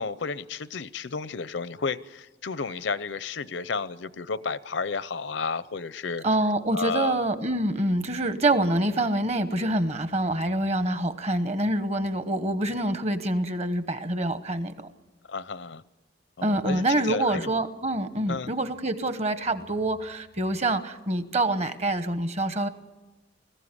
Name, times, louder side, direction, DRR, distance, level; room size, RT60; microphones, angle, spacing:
voice 1, 0.0-6.2 6.7-7.2 15.3-15.8 16.4-17.5 18.3-18.5, left 5 dB, 75° left, 16 dB, 0.7 m, -32 dB
voice 2, 6.2-14.7 16.4-22.7, right 1 dB, 35° right, 10 dB, 1.1 m, -26 dB
20.5 x 15.0 x 9.8 m, 1.1 s
head